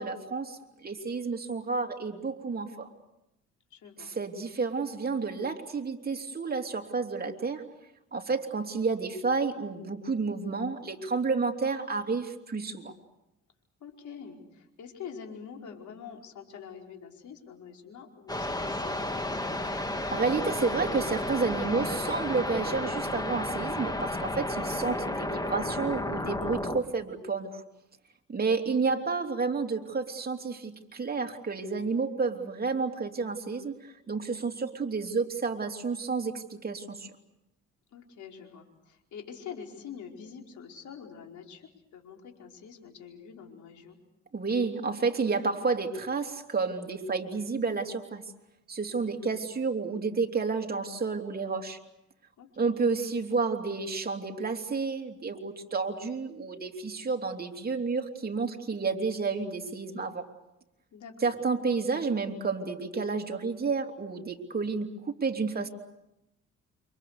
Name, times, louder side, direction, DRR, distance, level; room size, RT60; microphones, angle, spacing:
voice 1, 0.0-2.9 4.2-7.6 8.1-12.9 20.1-27.6 28.3-33.7 34.1-37.1 44.3-48.2 48.7-51.8 52.6-60.3 61.2-65.7, right 4 dB, 30° right, 3 dB, 3.1 m, -30 dB
voice 2, 3.7-4.1 13.8-19.4 28.6-28.8 37.9-44.0 49.0-49.4 52.4-52.8 60.9-61.3, left 7 dB, 70° left, 2 dB, 4.9 m, -46 dB
sound 1, 18.3-26.8, left 1 dB, 15° left, 2.1 m, -32 dB
29.0 x 26.0 x 6.7 m, 0.88 s
cardioid pair, 90°, 30 cm